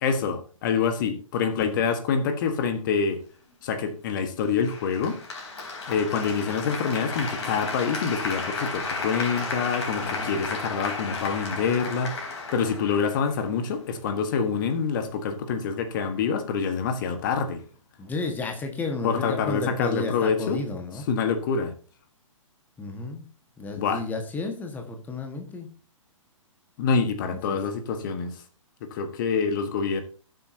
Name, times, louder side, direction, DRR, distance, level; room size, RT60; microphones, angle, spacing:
voice 1, 0.0-3.2 3.6-5.1 5.9-17.6 19.0-20.6 21.1-21.7 23.8-24.0 26.8-28.3 28.8-30.0, left 6 dB, 35° left, 1.5 m, -26 dB
Applause, 4.6-13.7, left 3 dB, 55° left, 3.8 m, -33 dB
voice 2, 10.0-10.4 18.0-21.1 22.8-23.3 23.6-25.7 27.3-27.6, left 3 dB, 10° left, 1.6 m, -32 dB
19.0 x 7.8 x 2.8 m
figure-of-eight pair, 125°, 17 cm